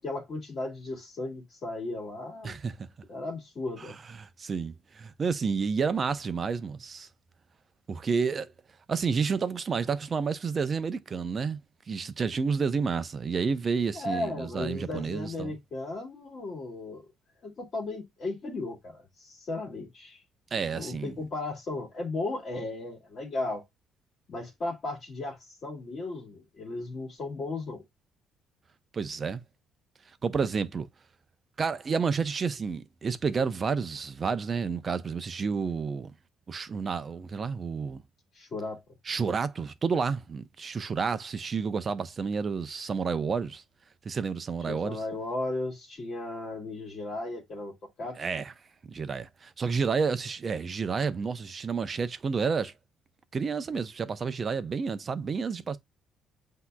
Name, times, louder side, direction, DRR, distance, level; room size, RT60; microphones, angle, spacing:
voice 1, 0.0-2.6 3.1-4.0 13.9-17.1 17.4-20.2 20.7-23.6 24.3-27.8 38.3-38.8 44.7-48.2, left 2 dB, 40° left, 2.1 m, -35 dB
voice 2, 2.4-2.9 4.1-7.1 7.9-8.5 8.9-11.6 11.9-15.5 20.5-21.1 28.9-29.4 30.2-30.9 31.6-36.1 36.5-38.0 39.1-43.6 44.0-45.0 48.2-48.5 48.9-52.7 53.3-55.8, right 5 dB, 30° right, 0.6 m, -30 dB
8.1 x 2.9 x 2.3 m
cardioid pair, 150°, 0 cm